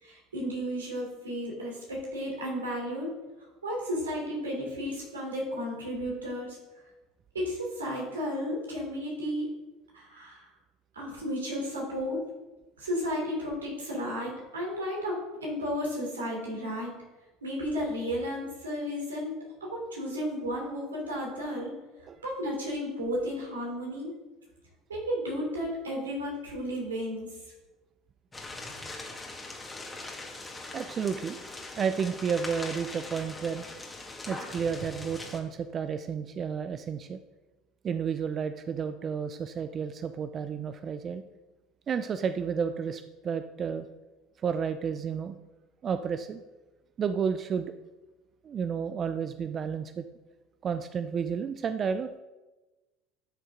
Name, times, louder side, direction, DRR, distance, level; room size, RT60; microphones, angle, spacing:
voice 1, 0.0-3.1 3.6-6.6 7.3-9.4 9.9-10.5 10.9-12.2 12.8-16.9 17.4-21.7 22.2-24.1 24.9-27.3, equal, 85° right, -3 dB, 3.3 m, -33 dB
sound 1, 28.3-35.4, left 2 dB, 15° left, 2.0 m, -41 dB
voice 2, 30.7-31.4 31.8-33.6 34.3-37.2 37.8-41.2 41.9-43.9 44.4-45.4 45.8-46.4 47.0-47.7 48.4-50.0 50.6-52.1, right 6 dB, 40° right, 10 dB, 0.5 m, -31 dB
12.0 x 6.5 x 3.8 m, 1.1 s
hypercardioid pair, 70°, 0 cm